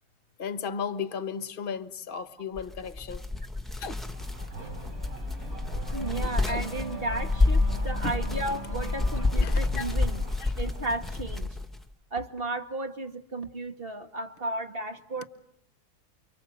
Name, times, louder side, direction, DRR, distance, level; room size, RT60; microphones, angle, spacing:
voice 1, 0.4-3.2 3.8-4.0 6.4-6.6 8.0-8.1 9.4-9.9 10.4-10.5, left 6 dB, 35° left, 1.4 m, -35 dB
sound 1, 2.6-11.8, left 3 dB, ahead, 1.9 m, -29 dB
Race car auto racing / Accelerating revving vroom, 4.0-11.3, right 3 dB, 55° right, 4.7 m, -42 dB
voice 2, 5.9-10.2 10.6-11.5 12.1-15.3, right 2 dB, 35° right, 2.1 m, -34 dB
29.5 x 25.0 x 8.1 m
omnidirectional pair, 1.8 m